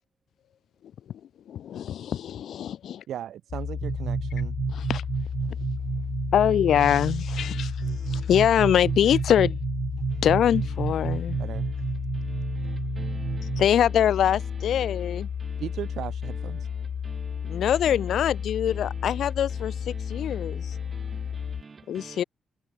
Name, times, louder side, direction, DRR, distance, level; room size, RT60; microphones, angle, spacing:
voice 1, 1.5-3.0 4.7-5.0 6.3-7.7 8.1-9.6 10.2-11.4 13.6-15.3 17.4-20.7 21.9-22.2, left 10 dB, 70° left, 1.5 m, -24 dB
voice 2, 3.1-4.5 11.4-11.7 15.6-16.7, right 11 dB, 80° right, 4.4 m, -36 dB
sound 1, 3.5-21.6, left 7 dB, 45° left, 4.5 m, -33 dB
sound 2, 3.8-13.7, right 7 dB, 45° right, 0.7 m, -31 dB
voice 3, 7.5-8.3 10.1-10.2 11.1-11.8 12.1-13.5 14.7-15.6 16.2-17.7 18.7-19.1 19.5-22.2, right 4 dB, 25° right, 1.3 m, -48 dB
wide cardioid pair, 175°, 0 cm